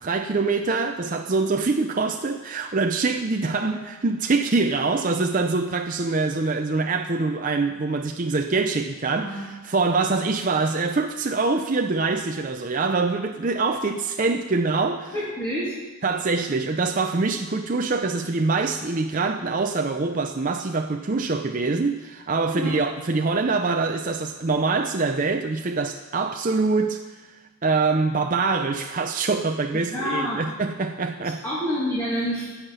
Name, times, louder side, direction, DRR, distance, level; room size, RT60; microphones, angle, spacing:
voice 1, 0.0-15.1 16.0-27.0 27.6-31.4, right 3 dB, 35° right, 0.5 m, -24 dB
voice 2, 9.2-9.5 15.1-15.7 22.5-22.7 29.9-30.4 31.4-32.5, equal, 10° left, 2.5 m, -28 dB
14.5 x 5.8 x 9.4 m
head